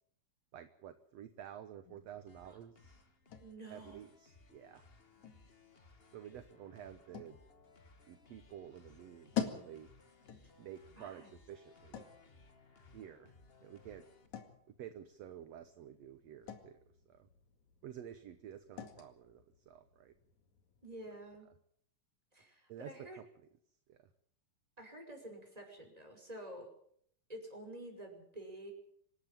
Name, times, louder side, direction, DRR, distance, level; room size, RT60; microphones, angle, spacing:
voice 1, 0.5-3.0 3.7-4.8 6.1-7.4 8.1-9.9 10.6-12.1 12.9-13.3 13.6-14.0 14.7-16.8 17.1-17.3 17.8-20.1 22.7-23.3 23.9-24.1, right 10 dB, 65° right, 10 dB, 1.9 m, -51 dB
sound 1, 1.8-21.4, left 9 dB, 60° left, 3.4 m, -49 dB
sound 2, 2.3-14.3, left 3 dB, 30° left, 1.0 m, -63 dB
voice 2, 3.4-4.0 11.0-11.3 20.8-21.5 22.3-23.2 24.8-26.7 27.3-28.7, right 1 dB, 10° right, 3 dB, 5.5 m, -49 dB
25.5 x 12.0 x 9.1 m, 0.66 s
omnidirectional pair, 3.8 m